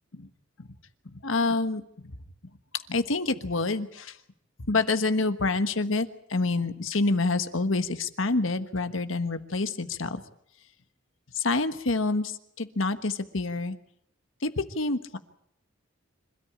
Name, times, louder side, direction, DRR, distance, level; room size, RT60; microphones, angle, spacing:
voice 1, 1.1-2.1 2.4-4.2 4.7-10.2 11.3-13.8 14.4-15.2, left 3 dB, 80° left, 10 dB, 1.4 m, -27 dB
26.5 x 13.5 x 8.9 m, 0.73 s
head